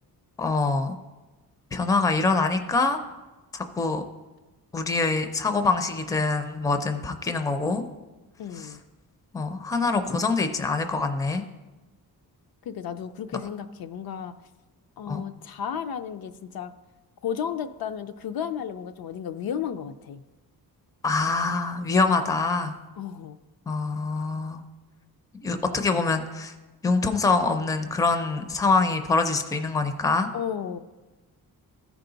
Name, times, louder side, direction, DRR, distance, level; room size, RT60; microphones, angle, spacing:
voice 1, 0.4-0.9 1.7-3.0 3.5-4.0 4.7-7.8 8.6-8.7 9.3-11.4 15.1-15.2 21.0-22.7 23.7-24.6 25.4-26.5 26.8-30.3, left 3 dB, 10° left, 8 dB, 0.4 m, -24 dB
voice 2, 8.4-8.8 12.6-14.3 15.0-16.7 17.2-20.2 23.0-23.4 30.3-30.8, left 8 dB, 70° left, 9 dB, 0.5 m, -33 dB
14.0 x 4.7 x 3.9 m, 1.2 s
wide cardioid pair, 155°, 37 cm